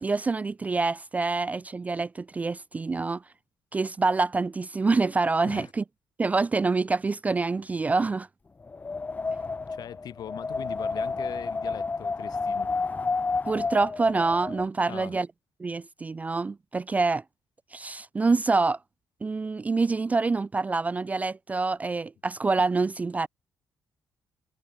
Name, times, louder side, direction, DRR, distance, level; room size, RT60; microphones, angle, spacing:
voice 1, 0.0-3.2 3.7-5.8 6.2-8.3 13.4-15.3 15.6-17.2 17.7-18.8 19.2-23.3, right 3 dB, 20° right, 0.3 m, -26 dB
Wind, 8.6-14.7, left 4 dB, 20° left, 1.1 m, -31 dB
voice 2, 9.4-12.7 14.9-15.2, left 10 dB, 60° left, 2.4 m, -41 dB
cardioid pair, 130°, 8 cm